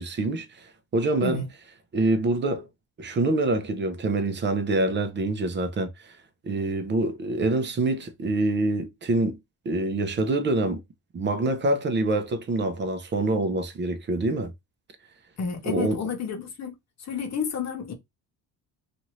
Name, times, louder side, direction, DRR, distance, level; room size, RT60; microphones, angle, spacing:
voice 1, 0.0-1.4 1.9-2.7 3.0-6.2 6.4-9.4 9.6-10.8 11.1-14.5 15.7-16.0, right 2 dB, 30° right, 0.7 m, -26 dB
voice 2, 15.4-17.9, left 6 dB, 45° left, 1.0 m, -31 dB
2.7 x 2.5 x 3.1 m
cardioid pair, 120°, 37 cm